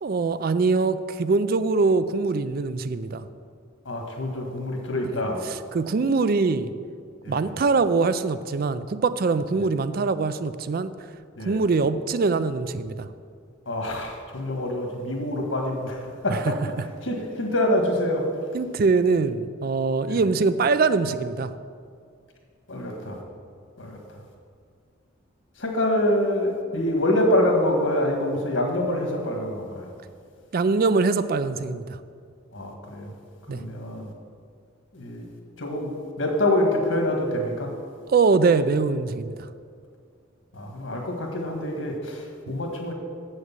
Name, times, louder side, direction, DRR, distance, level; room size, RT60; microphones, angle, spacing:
voice 1, 0.0-3.3 5.4-6.7 7.3-10.9 11.5-13.1 16.3-16.9 18.5-21.5 30.5-32.0 33.5-33.6 38.1-39.5, right 4 dB, 50° right, 13 dB, 0.4 m, -23 dB
voice 2, 3.8-5.4 7.2-7.5 9.6-9.7 11.4-11.6 13.7-16.4 17.0-18.3 20.0-20.2 22.7-23.2 23.8-24.0 25.6-29.9 32.5-33.1 33.5-34.1 34.9-35.2 35.6-35.9 36.2-37.7 40.5-42.9, left 1 dB, 75° left, 2 dB, 1.6 m, -26 dB
7.6 x 6.5 x 7.4 m, 2.2 s
head